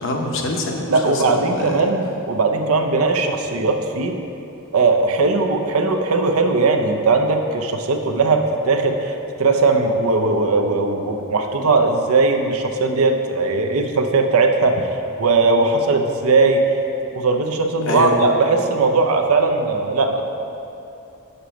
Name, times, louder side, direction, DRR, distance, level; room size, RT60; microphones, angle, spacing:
voice 1, 0.0-1.9 17.9-18.2, left 2 dB, 60° left, 1 dB, 0.9 m, -25 dB
voice 2, 0.9-4.2 4.7-16.8 17.1-20.2, right 3 dB, 75° right, 4 dB, 0.6 m, -19 dB
6.6 x 5.1 x 5.7 m, 3.0 s
head